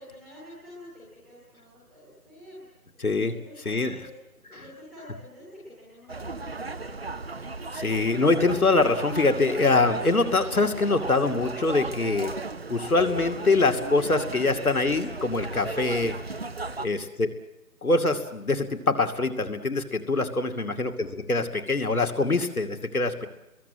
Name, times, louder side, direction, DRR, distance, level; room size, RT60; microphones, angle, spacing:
voice 1, 0.0-2.6 3.3-7.0 16.6-17.0 20.4-20.6, left 1 dB, ahead, -8 dB, 1.6 m, -48 dB
voice 2, 3.0-3.3 3.6-4.0 4.5-4.6 7.7-12.3 12.7-16.1 16.8-17.3 17.8-23.3, left 3 dB, 70° left, 6 dB, 2.8 m, -24 dB
sound 1, 6.1-16.9, right 3 dB, 40° right, 0.9 m, -36 dB
28.5 x 22.0 x 7.6 m, 0.94 s
figure-of-eight pair, 165°, 45 cm